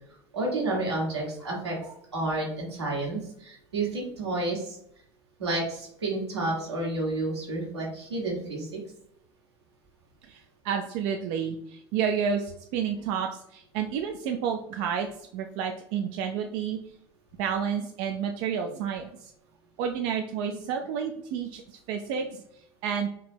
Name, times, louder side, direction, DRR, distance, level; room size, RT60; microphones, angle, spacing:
voice 1, 0.3-4.8 5.4-8.8, right 2 dB, 85° right, -2 dB, 1.5 m, -30 dB
voice 2, 10.2-15.1 15.3-16.8 17.4-19.3 19.8-23.1, right 7 dB, 60° right, 4 dB, 0.4 m, -30 dB
4.5 x 2.8 x 3.5 m, 0.72 s
hypercardioid pair, 75°, 14 cm